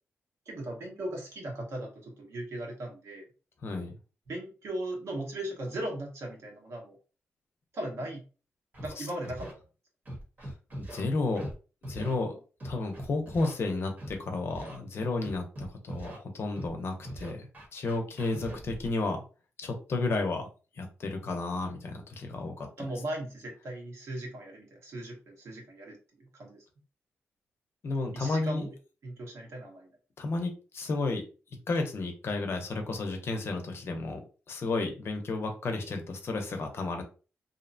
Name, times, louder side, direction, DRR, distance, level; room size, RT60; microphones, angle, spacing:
voice 1, 0.5-3.3 4.3-7.0 7.7-8.2 8.8-9.5 22.8-26.6 28.1-28.7 29.0-29.9, right 1 dB, 70° right, 0 dB, 1.1 m, -38 dB
voice 2, 3.6-3.9 9.0-9.1 10.4-11.5 11.8-19.2 19.6-20.5 20.8-22.7 27.8-28.7 30.2-31.2 31.7-34.2 34.5-37.0, left 3 dB, 60° left, 4 dB, 0.6 m, -32 dB
Scratching (performance technique), 8.7-8.9 9.2-9.5 10.1-11.0 11.4-11.5 11.8-12.2 12.6-13.5 14.0-14.1 14.5-14.8 15.2-16.2 16.6-16.7 17.0-18.9, right 1 dB, 35° right, 1.0 m, -41 dB
2.7 x 2.1 x 2.6 m, 0.34 s
wide cardioid pair, 115°, 5 cm